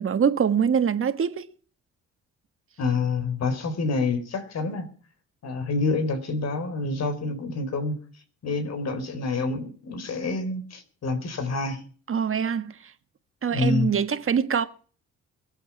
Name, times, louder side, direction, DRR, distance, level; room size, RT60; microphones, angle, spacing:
voice 1, 0.0-1.5 12.1-12.9 13.4-14.7, right 7 dB, 45° right, 1.6 m, -24 dB
voice 2, 2.8-4.8 5.4-8.0 8.4-11.8 13.5-13.9, left 3 dB, 60° left, 4.3 m, -27 dB
22.5 x 8.1 x 6.1 m
cardioid pair, 90°, 30 cm